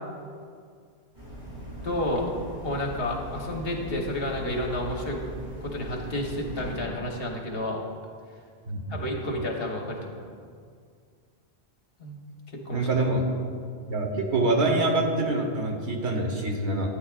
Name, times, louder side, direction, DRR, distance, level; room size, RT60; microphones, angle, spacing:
sound 1, 1.1-6.8, right 1 dB, 25° right, 2.4 m, -39 dB
voice 1, 1.8-2.3 2.6-5.2 5.6-7.8 8.9-10.2 12.0-12.2 12.6-12.9, left 1 dB, 65° left, 1 dB, 1.3 m, -30 dB
voice 2, 8.7-9.3 12.7-13.2 13.9-17.0, right 2 dB, 85° right, 2 dB, 1.4 m, -26 dB
13.0 x 8.9 x 2.4 m, 2.1 s
omnidirectional pair, 1.1 m